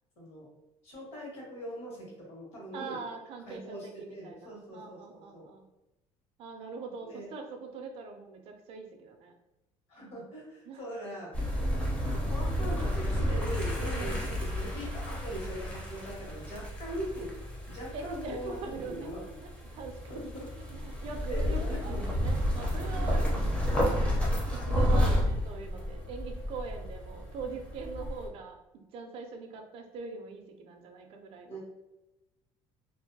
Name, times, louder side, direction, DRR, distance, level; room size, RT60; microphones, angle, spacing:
voice 1, 0.2-0.5 0.8-3.0 3.5-5.5 7.0-7.3 9.9-11.3 12.0-17.3 17.7-19.2 20.1-20.8 21.3-22.0 31.5-31.6, equal, 60° left, -4 dB, 1.2 m, -41 dB
voice 2, 2.7-5.6 6.4-9.3 10.7-10.9 13.9-14.4 17.9-23.3 23.9-28.6 28.9-31.6, right 4 dB, 50° right, 4 dB, 0.4 m, -42 dB
sound 1, 11.3-28.3, equal, 10° left, 0.5 m, -31 dB
2.5 x 2.2 x 2.6 m, 0.98 s
cardioid pair, 160°, 12 cm